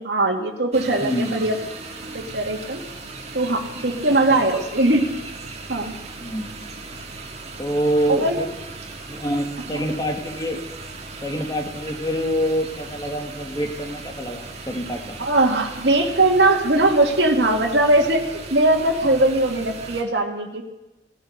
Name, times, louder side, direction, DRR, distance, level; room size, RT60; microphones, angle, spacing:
voice 1, 0.0-1.6 2.1-2.8 3.3-5.0 5.7-5.9 8.1-8.4 15.2-18.2 18.5-20.6, right 2 dB, 80° right, 1 dB, 1.9 m, -20 dB
sound 1, 0.7-20.0, right 3 dB, 40° right, 2.0 m, -37 dB
voice 2, 1.0-1.4 6.2-6.6 7.6-8.5 9.1-10.6 11.2-15.2, equal, 20° left, 3 dB, 1.8 m, -26 dB
17.0 x 12.5 x 6.5 m, 1.0 s
head